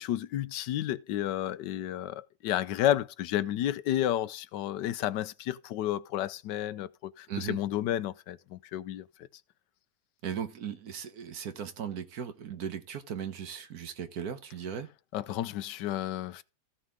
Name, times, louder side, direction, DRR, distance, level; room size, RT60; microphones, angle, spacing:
voice 1, 0.0-9.0 15.1-16.4, left 12 dB, 80° left, 1.3 m, -31 dB
voice 2, 10.2-14.9, right 8 dB, 60° right, 1.5 m, -37 dB
15.0 x 6.3 x 3.7 m
omnidirectional pair, 1.9 m